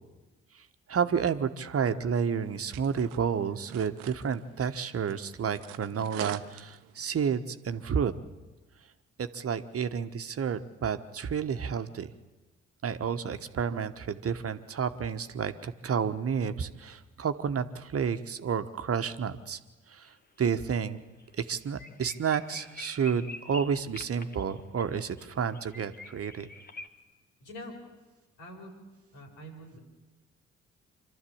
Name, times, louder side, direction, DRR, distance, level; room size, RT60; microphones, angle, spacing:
voice 1, 0.9-8.1 9.2-12.1 12.8-19.6 19.9-21.0 21.4-26.5, right 7 dB, 45° right, 9 dB, 1.2 m, -30 dB
sound 1, 2.2-7.1, right 13 dB, 75° right, 0.9 m, -46 dB
sound 2, 20.1-20.4 20.7-20.8 21.2-21.3 21.6-26.9, left 3 dB, 30° left, 1.7 m, -46 dB
voice 2, 27.4-27.8 28.4-28.7 29.1-29.8, equal, 80° left, 0 dB, 4.9 m, -44 dB
26.0 x 12.5 x 8.6 m, 1.2 s
hypercardioid pair, 45°, 33 cm